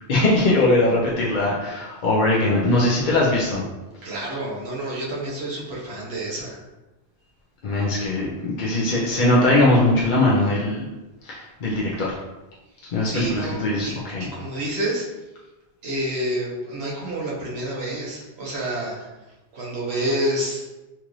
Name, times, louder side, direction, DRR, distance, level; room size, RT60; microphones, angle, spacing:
voice 1, 0.1-3.6 7.6-10.9 11.2-12.1 12.9-14.3, left 2 dB, 50° left, -5 dB, 0.7 m, -20 dB
voice 2, 4.0-6.6 12.8-13.9 14.2-15.1 15.8-19.1 19.5-20.6, right 1 dB, 70° right, -5 dB, 1.3 m, -28 dB
4.6 x 2.5 x 3.1 m, 1.1 s
omnidirectional pair, 1.1 m